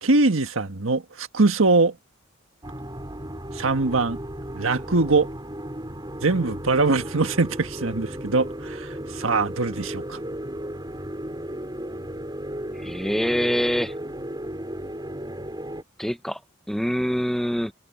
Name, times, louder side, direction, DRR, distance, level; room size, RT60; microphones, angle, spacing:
voice 1, 0.0-1.9 3.5-4.2 4.5-5.3 6.2-10.2, right 3 dB, 75° right, 1.5 m, -22 dB
sound 1, 2.6-15.8, right 1 dB, 20° right, 7.0 m, -35 dB
voice 2, 12.8-13.9 16.0-16.4 16.7-17.7, equal, ahead, 0.9 m, -25 dB
head